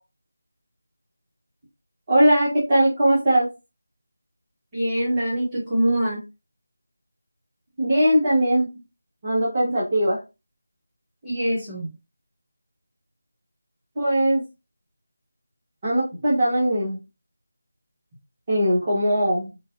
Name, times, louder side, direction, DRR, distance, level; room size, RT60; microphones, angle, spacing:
voice 1, 2.1-3.5 7.8-8.7 9.2-10.2 14.0-14.4 15.8-17.0 18.5-19.5, right 1 dB, 25° right, -8 dB, 1.3 m, -20 dB
voice 2, 4.7-6.2 11.2-11.9, equal, 10° right, -10 dB, 1.9 m, -24 dB
4.6 x 2.6 x 2.6 m, 0.25 s
figure-of-eight pair, 165°, 0 cm